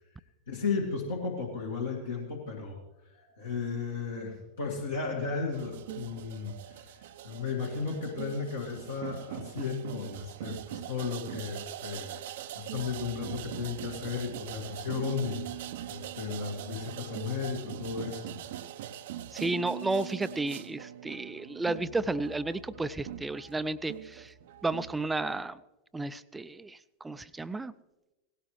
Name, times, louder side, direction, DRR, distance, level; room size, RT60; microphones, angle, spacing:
voice 1, 0.5-2.8 3.1-7.0 7.2-18.3, left 5 dB, 70° left, -2 dB, 2.1 m, -35 dB
sound 1, 5.5-25.4, right 11 dB, 55° right, 0.6 m, -42 dB
voice 2, 19.3-24.3 24.6-25.6 25.9-27.7, right 2 dB, 10° right, 14 dB, 0.5 m, -32 dB
18.0 x 16.5 x 3.2 m, 1.0 s
figure-of-eight pair, 90°, 0 cm